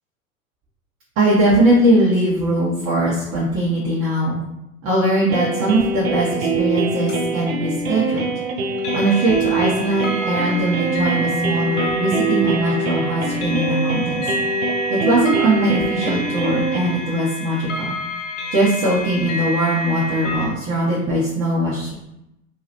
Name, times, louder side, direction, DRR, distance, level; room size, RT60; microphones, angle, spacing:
voice 1, 1.2-4.4 4.8-8.3 8.9-14.2 14.9-18.0 18.5-21.9, right 1 dB, 30° right, -6 dB, 0.8 m, -20 dB
sound 1, 5.3-16.8, right 4 dB, 80° right, 0.5 m, -24 dB
sound 2, 7.1-7.2 8.8-20.5, equal, 60° left, 0.7 m, -29 dB
2.8 x 2.3 x 3.2 m, 0.84 s
figure-of-eight pair, 90°, 42 cm